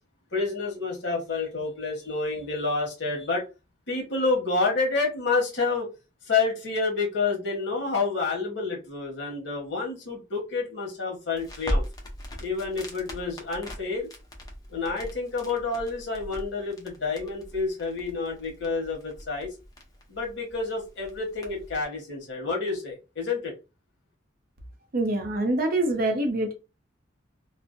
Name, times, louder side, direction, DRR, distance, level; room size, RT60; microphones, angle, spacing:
voice 1, 0.3-3.4 3.9-5.9 6.2-11.8 12.4-14.1 14.7-19.5 20.1-23.5, left 4 dB, 65° left, 1.0 m, -29 dB
Crackle, 11.3-21.8, equal, 20° left, 0.5 m, -38 dB
voice 2, 24.9-26.5, right 2 dB, 50° right, 0.6 m, -25 dB
2.5 x 2.0 x 2.4 m
head